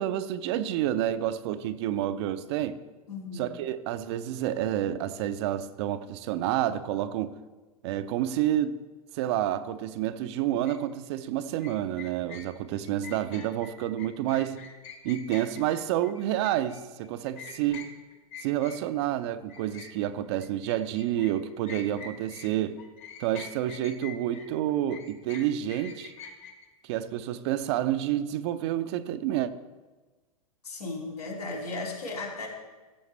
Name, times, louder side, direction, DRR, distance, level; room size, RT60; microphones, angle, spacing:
voice 1, 0.0-2.8 3.4-7.3 7.8-8.8 9.1-14.6 15.0-17.9 18.4-22.8 23.2-26.1 26.8-29.5, right 12 dB, 45° right, 12 dB, 0.6 m, -29 dB
voice 2, 3.1-3.5 30.6-32.5, left 3 dB, 80° left, -3 dB, 3.2 m, -35 dB
sound 1, 10.7-10.8 11.6-19.1 19.5-22.5 22.8-26.7, left 6 dB, 35° left, 1.4 m, -45 dB
15.5 x 7.1 x 3.3 m, 1.3 s
figure-of-eight pair, 100°, 20 cm